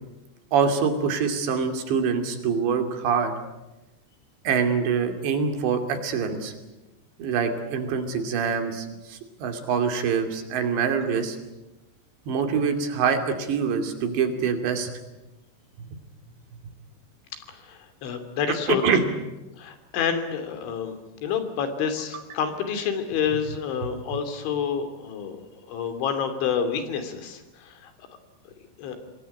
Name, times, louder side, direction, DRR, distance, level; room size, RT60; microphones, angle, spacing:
voice 1, 0.5-3.3 4.4-6.5 7.2-11.4 12.3-15.0 18.7-19.0, right 6 dB, 75° right, 6 dB, 4.9 m, -25 dB
voice 2, 17.5-19.1 19.6-25.4 25.7-27.9 28.8-29.0, left 7 dB, 85° left, 8 dB, 5.2 m, -28 dB
27.0 x 20.0 x 9.8 m, 1.0 s
omnidirectional pair, 5.2 m